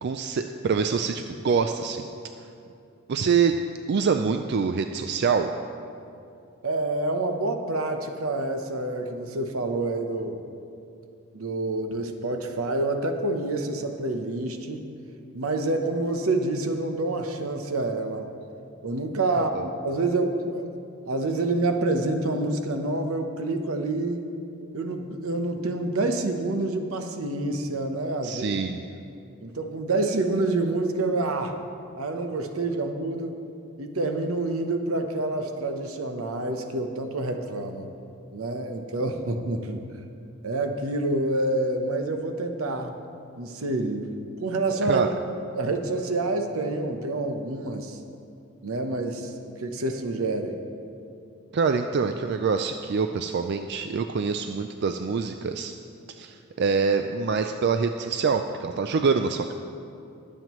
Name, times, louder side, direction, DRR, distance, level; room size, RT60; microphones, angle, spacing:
voice 1, 0.0-2.0 3.1-3.5 3.9-5.5 19.3-19.7 28.2-28.8 44.8-45.1 51.5-55.7 56.2-59.5, right 5 dB, 50° right, 6 dB, 0.4 m, -25 dB
voice 2, 6.6-10.4 11.3-14.9 15.3-18.3 18.8-20.7 21.1-24.3 24.7-28.6 29.4-31.6 32.0-33.4 33.8-37.9 38.3-39.8 40.4-43.0 43.4-44.1 44.4-45.1 45.5-48.0 48.6-50.6, right 2 dB, 80° right, 6 dB, 0.9 m, -27 dB
21.5 x 7.4 x 3.1 m, 2.6 s
head